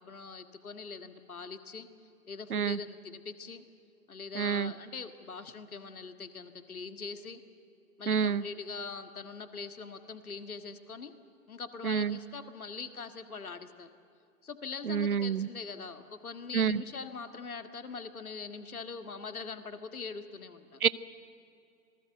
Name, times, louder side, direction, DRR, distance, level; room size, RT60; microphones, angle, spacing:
voice 1, 0.0-1.9 2.3-3.6 4.1-7.4 8.0-11.1 11.5-13.9 14.4-20.8, left 5 dB, 70° left, 9 dB, 1.8 m, -42 dB
voice 2, 4.3-4.7 8.1-8.4 11.8-12.2 14.8-15.5 16.5-16.8 20.8-20.9, right 7 dB, 70° right, 19 dB, 0.8 m, -28 dB
26.5 x 19.0 x 8.0 m, 2.5 s
figure-of-eight pair, 120°, 45 cm